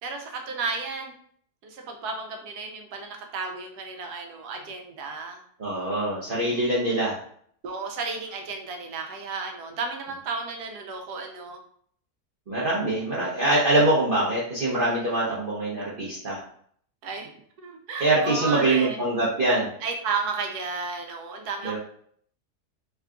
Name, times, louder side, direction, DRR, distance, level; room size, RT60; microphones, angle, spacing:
voice 1, 0.0-1.1 1.6-5.4 6.5-6.9 7.6-11.6 14.9-15.2 17.0-17.3 17.6-19.0 19.8-21.8, right 4 dB, 75° right, 3 dB, 1.2 m, -33 dB
voice 2, 5.6-7.2 12.5-16.4 18.0-19.7 21.6-21.8, right 2 dB, 45° right, -7 dB, 0.7 m, -24 dB
3.6 x 2.3 x 3.6 m, 0.62 s
omnidirectional pair, 1.8 m